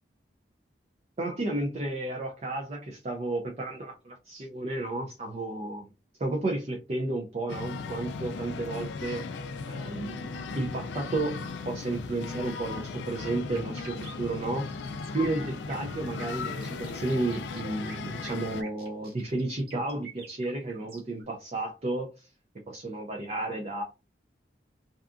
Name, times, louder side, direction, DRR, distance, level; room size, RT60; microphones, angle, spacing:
voice 1, 1.2-5.9 6.2-9.2 9.7-10.3 10.6-11.4 11.6-14.8 15.1-22.3 22.7-23.8, right 2 dB, 35° right, 2 dB, 0.4 m, -32 dB
sound 1, 7.5-18.6, left 4 dB, 80° left, 0.3 m, -37 dB
sound 2, 13.5-21.2, right 5 dB, 55° right, 0.8 m, -49 dB
2.7 x 2.3 x 2.4 m, 0.31 s
head